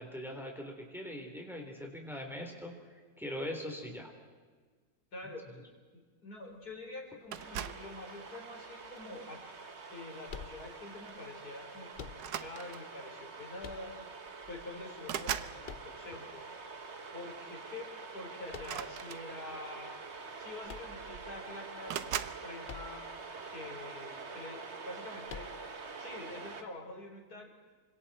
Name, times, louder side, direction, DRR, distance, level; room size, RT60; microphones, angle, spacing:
voice 1, 0.0-4.1, left 1 dB, ahead, 1 dB, 3.7 m, -41 dB
voice 2, 5.1-5.5 5.9-9.6 9.8-13.9 14.5-16.5 17.1-17.9 18.1-19.9 20.4-23.1 23.4-25.5 26.0-27.5, left 2 dB, 75° left, 0 dB, 5.1 m, -46 dB
sound 1, 7.3-7.9 8.8-9.1 10.6-10.8 11.1-11.3 12.1-13.0 14.0-14.1 14.4-15.6 18.6-19.7 20.6-20.7 20.9-21.4 21.9-22.4, right 10 dB, 85° right, 1.4 m, -39 dB
sound 2, 7.4-26.6, right 4 dB, 45° right, 1.8 m, -46 dB
sound 3, 10.3-11.1 11.9-12.6 13.6-14.3 15.6-16.4 18.5-19.1 20.6-21.5 22.6-23.2 23.5-23.6 25.3-25.9, left 6 dB, 45° left, 0.7 m, -48 dB
28.5 x 25.0 x 4.4 m, 1.5 s
omnidirectional pair, 1.7 m